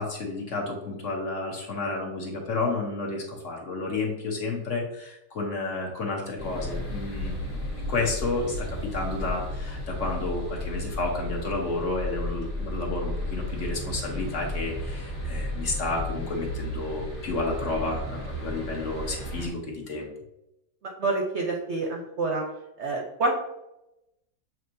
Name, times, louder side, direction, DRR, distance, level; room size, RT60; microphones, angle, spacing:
voice 1, 0.0-7.6 7.9-20.1, left 3 dB, 55° left, 0 dB, 1.2 m, -31 dB
sound 1, 6.4-19.5, left 1 dB, 35° left, 1.4 m, -33 dB
voice 2, 21.0-22.4 22.8-23.3, right 3 dB, 60° right, 0 dB, 0.8 m, -27 dB
6.9 x 3.0 x 2.6 m, 0.89 s
omnidirectional pair, 1.6 m